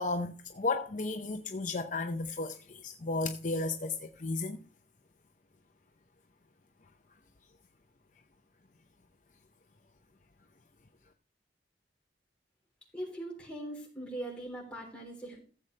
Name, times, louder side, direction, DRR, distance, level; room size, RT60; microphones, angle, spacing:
voice 1, 0.0-4.6, left 3 dB, 45° left, 0.7 m, -34 dB
voice 2, 12.9-15.4, right 1 dB, 5° left, 3.8 m, -41 dB
14.5 x 7.8 x 3.3 m
head